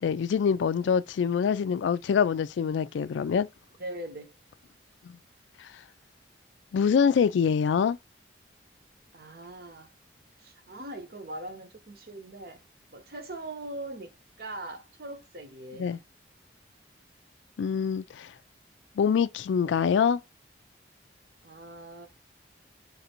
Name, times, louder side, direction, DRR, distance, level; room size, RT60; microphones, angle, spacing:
voice 1, 0.0-3.5 5.0-5.2 5.6-5.7 6.7-8.0 15.8-16.0 17.6-18.3 19.0-20.2, left 6 dB, 85° left, 0.3 m, -25 dB
voice 2, 3.8-4.4 9.1-9.9 10.4-12.6 12.9-16.0 21.4-22.1, right 1 dB, 55° right, 0.8 m, -41 dB
3.3 x 2.6 x 4.3 m
head